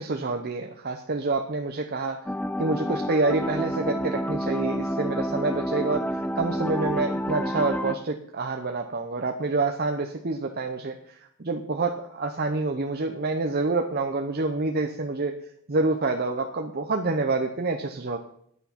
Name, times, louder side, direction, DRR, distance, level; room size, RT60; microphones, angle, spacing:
voice 1, 0.0-2.2 2.6-15.3 15.7-18.2, right 3 dB, 45° right, 4 dB, 0.7 m, -27 dB
sound 1, 2.3-7.9, equal, 5° left, 0.4 m, -29 dB
9.3 x 8.3 x 5.8 m, 0.68 s
head